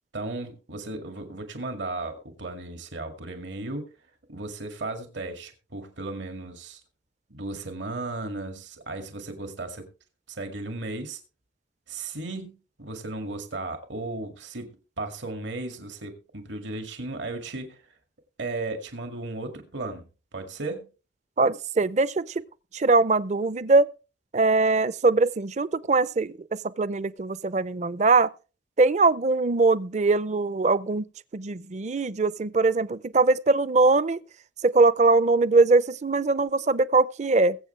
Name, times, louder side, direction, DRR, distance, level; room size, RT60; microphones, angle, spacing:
voice 1, 0.1-3.9 4.3-6.8 7.3-9.9 10.3-11.2 11.9-17.8 18.4-20.0 20.3-20.9, right 2 dB, 85° right, 2.1 m, -35 dB
voice 2, 21.4-22.4 22.7-23.9 24.3-28.3 28.8-31.1 31.3-34.2 34.6-37.6, right 3 dB, 40° right, 0.5 m, -22 dB
21.5 x 7.9 x 3.2 m
head